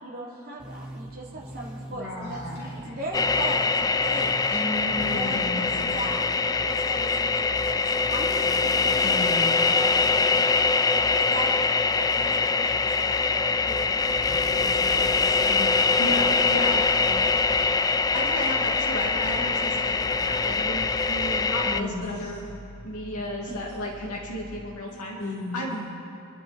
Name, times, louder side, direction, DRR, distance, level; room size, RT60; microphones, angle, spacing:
voice 1, 0.0-4.6 5.0-6.2 6.6-9.3 9.7-14.2 14.6-15.3 16.7-17.3, right 1 dB, 45° right, -5 dB, 2.8 m, -38 dB
sound 1, 0.6-5.7, right 1 dB, 5° right, 2.3 m, -42 dB
voice 2, 1.9-3.0 4.5-5.9 9.0-9.6 14.3-14.4 15.5-15.7 16.1-16.2 21.6-22.4 23.5-23.6 24.9-25.8, left 2 dB, 75° left, -8 dB, 3.1 m, -35 dB
sound 2, 3.1-21.8, left 4 dB, 15° left, 0.3 m, -23 dB
sound 3, 13.8-24.6, equal, 55° left, 3.1 m, -45 dB
voice 3, 16.0-16.8 17.1-17.2 18.1-22.4 22.8-25.2 25.5-25.8, equal, 90° left, -4 dB, 2.1 m, -33 dB
27.0 x 11.0 x 4.2 m, 2.9 s
head